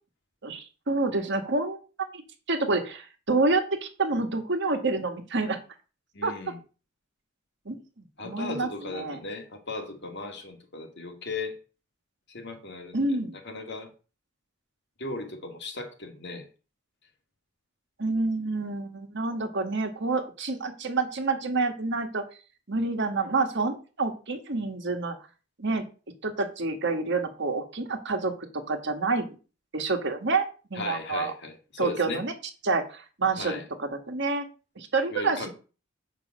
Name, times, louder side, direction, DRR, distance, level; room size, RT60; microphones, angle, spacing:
voice 1, 0.4-2.2 2.5-5.6 6.2-6.3 7.6-7.8 8.2-9.2 12.9-13.4 18.0-22.2 22.7-25.1 25.6-25.8 26.2-29.3 29.7-31.3 31.8-32.3 32.6-34.5 34.7-35.5, right 3 dB, 60° right, 1.6 m, -28 dB
voice 2, 6.1-6.6 8.2-11.6 12.3-13.2 13.4-13.9 15.0-16.5 30.8-32.2 33.4-33.6 35.1-35.5, left 3 dB, 60° left, 2.2 m, -37 dB
7.5 x 5.5 x 6.4 m
head